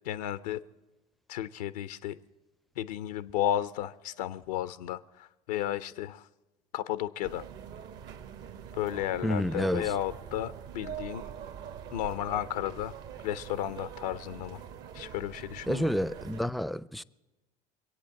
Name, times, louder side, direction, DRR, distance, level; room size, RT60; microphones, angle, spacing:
voice 1, 0.0-0.6 1.3-2.2 2.8-6.3 6.7-7.5 8.7-11.2 11.9-13.0 13.2-14.6 14.9-15.9, left 12 dB, 80° left, 0.5 m, -33 dB
sound 1, 7.2-16.4, right 8 dB, 60° right, 1.1 m, -44 dB
voice 2, 9.2-9.9 15.7-17.0, equal, ahead, 0.4 m, -29 dB
23.0 x 8.5 x 7.4 m
hypercardioid pair, 70°, 20 cm